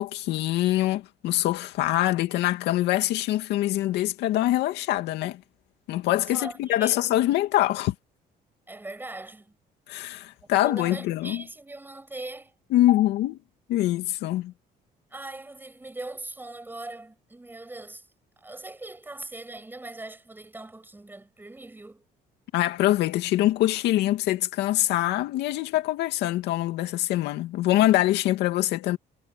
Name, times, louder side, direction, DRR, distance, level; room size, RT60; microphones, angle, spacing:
voice 1, 0.0-5.4 5.9-7.9 9.9-11.4 12.7-13.4 13.7-14.5 22.5-29.0, left 15 dB, 80° left, 2.4 m, -24 dB
voice 2, 6.3-7.2 8.7-9.5 10.5-12.5 15.1-18.1 18.4-22.0, right 2 dB, 10° right, 7.8 m, -40 dB
cardioid pair, 110°, 17 cm